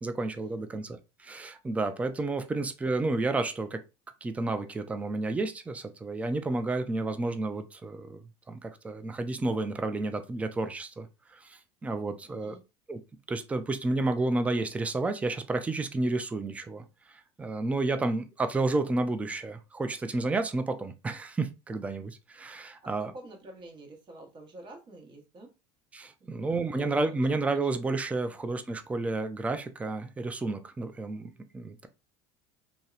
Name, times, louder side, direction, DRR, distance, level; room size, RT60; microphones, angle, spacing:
voice 1, 0.0-3.8 4.2-12.6 12.9-13.0 13.3-23.1 25.9-31.9, right 2 dB, 10° right, 0.3 m, -31 dB
voice 2, 12.2-12.6 22.8-25.5 26.2-26.3 26.7-27.3 27.5-27.7, right 2 dB, 35° right, 0.9 m, -48 dB
2.7 x 2.0 x 2.3 m
supercardioid pair, 110°, 14 cm